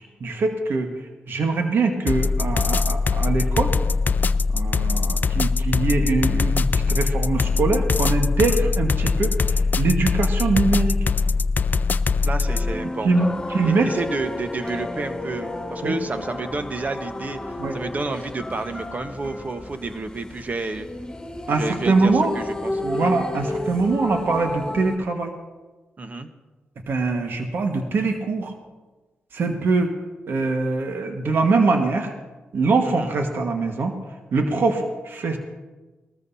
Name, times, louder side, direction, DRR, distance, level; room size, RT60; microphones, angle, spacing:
voice 1, 0.2-0.9 1.3-3.7 4.5-11.0 13.0-13.9 15.8-16.0 17.6-17.8 21.5-22.4 22.8-25.3 26.9-28.5 29.3-29.9 30.3-32.1 32.5-33.9 34.3-35.4, right 3 dB, 65° right, 4 dB, 1.5 m, -23 dB
sound 1, 2.1-12.7, left 4 dB, 50° left, 0.4 m, -22 dB
voice 2, 12.2-13.3 13.6-20.9 21.5-23.1 26.0-26.3 32.8-33.1, right 3 dB, 40° right, 8 dB, 1.2 m, -30 dB
sound 2, 12.4-25.0, left 2 dB, 10° left, 3.6 m, -32 dB
20.0 x 14.0 x 2.8 m, 1.2 s
cardioid pair, 60°, 4 cm